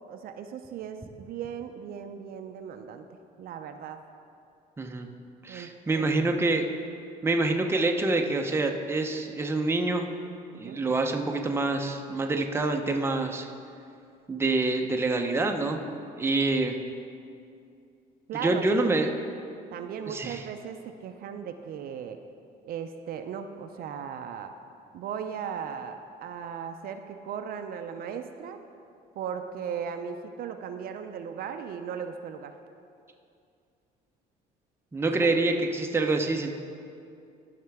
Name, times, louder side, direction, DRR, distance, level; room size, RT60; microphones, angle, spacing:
voice 1, 0.1-4.0 5.5-6.1 10.5-10.8 18.3-19.0 19.7-22.2 22.6-24.5 24.9-28.6 29.2-32.5 35.2-35.3, right 7 dB, 60° right, 7 dB, 0.5 m, -37 dB
voice 2, 4.8-5.1 5.4-6.7 7.2-10.1 10.6-13.5 14.3-15.8 16.2-16.8 18.4-19.1 20.1-20.4 34.9-36.5, right 2 dB, 15° right, 3 dB, 0.6 m, -26 dB
12.5 x 5.7 x 3.5 m, 2.5 s
cardioid pair, 110°, 17 cm